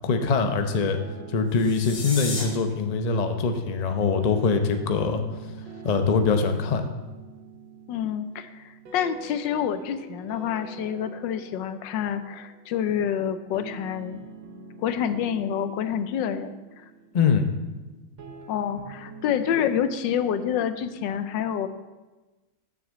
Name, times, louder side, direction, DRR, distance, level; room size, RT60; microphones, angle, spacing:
voice 1, 0.0-1.0 1.3-5.2 5.8-6.8 17.1-17.5, left 5 dB, 65° left, 6 dB, 0.4 m, -23 dB
sound 1, 0.6-19.5, right 4 dB, 90° right, 1.9 m, -46 dB
sound 2, 1.5-2.4, left 2 dB, 30° left, 2.0 m, -34 dB
voice 2, 7.9-14.2 14.8-16.8 18.5-21.7, left 8 dB, 80° left, 11 dB, 1.3 m, -28 dB
7.0 x 7.0 x 7.5 m, 1.2 s
omnidirectional pair, 2.0 m